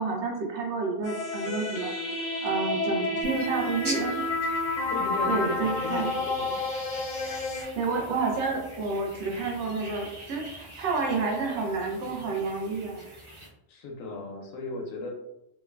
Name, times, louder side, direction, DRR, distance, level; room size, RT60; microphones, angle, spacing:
voice 1, 0.0-1.9 2.4-4.2 5.3-6.1 7.8-13.0, right 4 dB, 65° right, 0 dB, 0.8 m, -29 dB
sound 1, 1.0-7.6, left 2 dB, 55° left, 0.4 m, -30 dB
sound 2, 3.2-13.5, equal, 30° right, 0.6 m, -43 dB
voice 2, 4.9-6.7 13.4-15.1, left 2 dB, 85° left, 2 dB, 1.0 m, -36 dB
3.0 x 2.3 x 2.3 m, 0.87 s
omnidirectional pair, 1.4 m